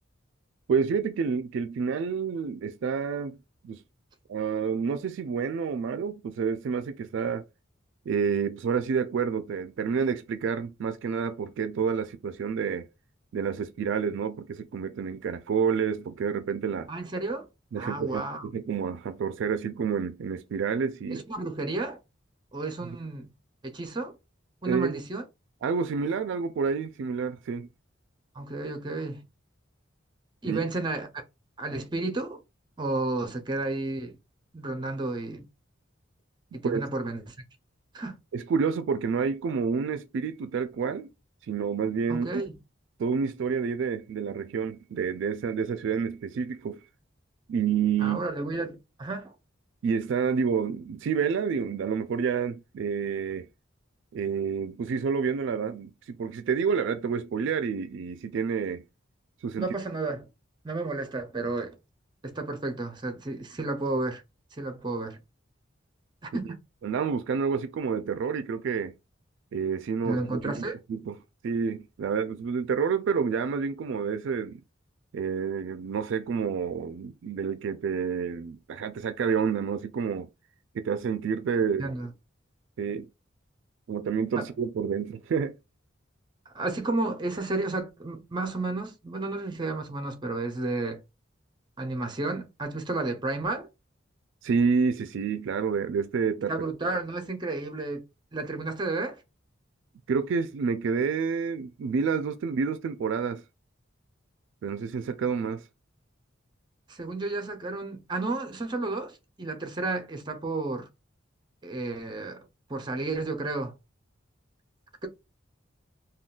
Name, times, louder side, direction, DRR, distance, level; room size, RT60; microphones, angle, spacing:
voice 1, 0.7-3.4 3.6-3.8 4.3-7.4 8.1-12.9 13.3-16.9 17.7-21.2 24.7-25.0 25.6-27.7 30.5-30.6 36.6-36.9 38.3-41.1 41.5-42.3 43.0-46.8 47.5-48.2 49.8-53.5 54.1-58.8 59.4-59.7 66.8-68.9 69.5-70.5 70.9-71.1 71.4-74.6 75.1-80.3 80.7-81.9 82.8-83.1 83.9-85.5 94.4-96.5 100.1-103.4 104.6-105.6, right 6 dB, 65° right, 0.3 m, -29 dB
voice 2, 16.9-17.5 17.8-18.5 21.1-22.0 22.5-23.3 23.6-24.1 24.6-25.2 28.4-29.2 30.4-31.1 31.6-32.4 32.8-34.2 34.5-35.4 36.5-37.3 37.9-38.2 42.1-42.6 48.0-49.3 59.6-60.3 60.6-61.8 62.2-64.2 64.5-65.2 66.2-66.6 70.0-70.8 81.8-82.1 84.4-84.5 86.5-91.0 91.8-93.7 96.5-98.0 98.3-99.2 106.9-110.9 111.6-112.4 112.7-113.7, right 2 dB, 25° right, 0.6 m, -32 dB
3.7 x 2.3 x 2.3 m
head